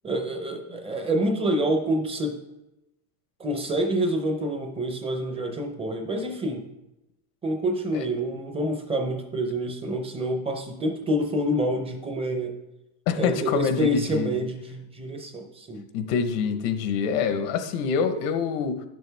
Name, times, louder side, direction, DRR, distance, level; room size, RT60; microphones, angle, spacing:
voice 1, 0.0-2.4 3.4-6.7 7.4-12.5 13.2-15.9, right 1 dB, 15° right, 5 dB, 0.5 m, -27 dB
voice 2, 13.1-14.4 15.9-18.8, left 6 dB, 90° left, 8 dB, 1.1 m, -26 dB
10.0 x 6.8 x 3.4 m, 0.95 s
cardioid pair, 170°, 45 cm